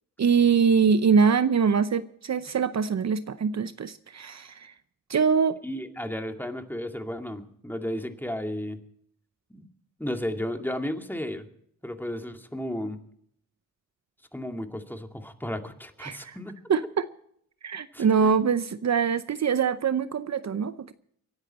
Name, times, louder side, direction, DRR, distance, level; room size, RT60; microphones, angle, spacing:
voice 1, 0.2-4.7 5.1-5.6 16.0-16.4 16.7-17.1 17.6-20.9, right 6 dB, 55° right, 13 dB, 0.7 m, -23 dB
voice 2, 5.6-8.8 9.5-9.7 10.0-11.5 11.8-13.0 14.3-16.6 17.9-18.3, left 1 dB, 5° left, 5 dB, 2.3 m, -33 dB
25.5 x 10.5 x 4.3 m, 0.68 s
cardioid pair, 60°, 33 cm